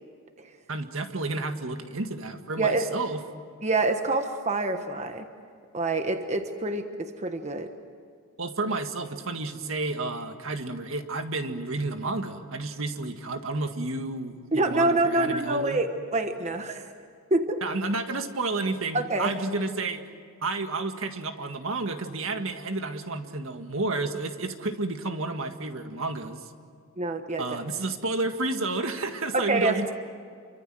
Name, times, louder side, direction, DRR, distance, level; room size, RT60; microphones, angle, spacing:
voice 1, 0.7-3.2 8.4-15.8 17.6-20.1 20.4-26.5 27.4-29.9, right 3 dB, 65° right, 7 dB, 1.8 m, -31 dB
voice 2, 3.6-5.2 5.7-7.7 14.5-16.9 17.3-17.6 18.9-19.3 27.0-27.6 29.3-29.9, right 2 dB, 30° right, 6 dB, 1.3 m, -26 dB
28.5 x 24.5 x 7.8 m, 2.2 s
head